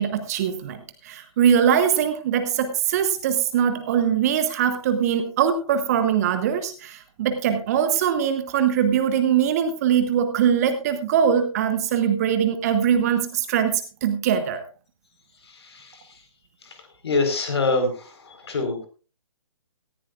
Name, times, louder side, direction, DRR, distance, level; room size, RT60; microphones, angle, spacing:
voice 1, 0.0-14.6, right 8 dB, 30° right, 8 dB, 1.5 m, -22 dB
voice 2, 15.6-16.0 17.0-18.9, left 3 dB, 50° left, 6 dB, 4.4 m, -25 dB
18.5 x 14.5 x 2.5 m, 0.35 s
figure-of-eight pair, 135°, 18 cm